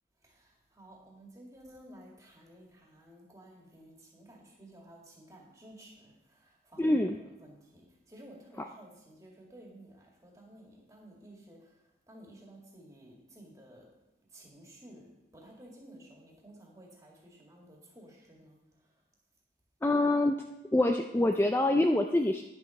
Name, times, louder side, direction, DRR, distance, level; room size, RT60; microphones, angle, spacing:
voice 1, 0.2-11.7 12.1-13.9 14.3-18.6, right 1 dB, 20° right, -2 dB, 2.1 m, -54 dB
voice 2, 6.8-7.2 8.6-8.7 19.8-20.4 20.7-22.4, left 1 dB, 10° left, 4 dB, 0.3 m, -25 dB
10.0 x 7.2 x 5.2 m, 0.93 s
head